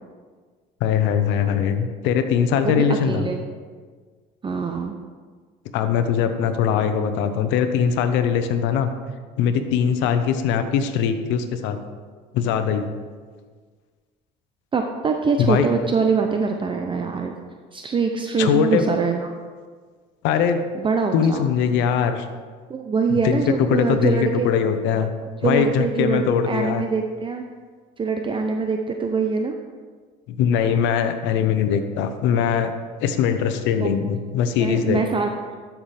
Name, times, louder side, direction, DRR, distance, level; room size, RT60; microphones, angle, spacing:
voice 1, 0.8-3.3 5.7-8.9 9.4-11.8 12.3-12.9 15.4-15.7 18.4-18.9 20.2-20.6 21.1-22.3 23.2-25.1 25.4-26.8 30.3-32.7 33.0-35.0, left 7 dB, 75° left, 9 dB, 0.9 m, -21 dB
voice 2, 2.6-3.4 4.4-5.0 14.7-17.3 17.7-19.3 20.7-21.5 22.7-24.5 25.4-27.4 28.0-29.6 33.8-33.9 34.6-35.3, right 5 dB, 25° right, 4 dB, 0.6 m, -23 dB
13.0 x 6.0 x 3.4 m, 1.5 s
supercardioid pair, 100°, 19 cm